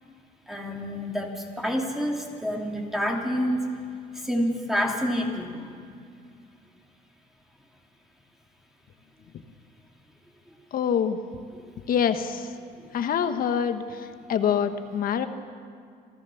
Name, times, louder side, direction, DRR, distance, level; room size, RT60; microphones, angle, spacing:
voice 1, 0.5-3.6 4.1-5.7, equal, ahead, 0 dB, 2.8 m, -28 dB
voice 2, 10.7-11.2 11.9-12.5 12.9-15.3, left 8 dB, 60° left, 8 dB, 1.3 m, -25 dB
27.5 x 15.0 x 7.1 m, 2.3 s
cardioid pair, 110°, 17 cm